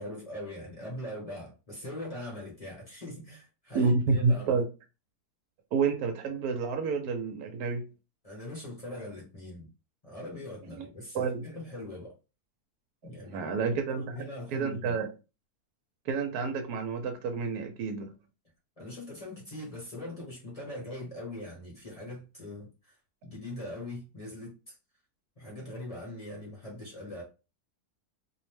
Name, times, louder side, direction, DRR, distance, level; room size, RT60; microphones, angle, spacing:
voice 1, 0.0-4.6 8.2-9.7 10.0-12.1 13.0-13.5 13.9-15.0 18.8-23.0 23.2-24.7 25.4-27.2, left 1 dB, 30° left, 0.8 m, -41 dB
voice 2, 3.7-4.7 5.7-7.8 10.8-10.9 11.1-11.5 13.3-14.2 14.5-15.1 16.1-18.1, right 4 dB, 75° right, 1.0 m, -29 dB
2.7 x 2.0 x 3.1 m
omnidirectional pair, 1.7 m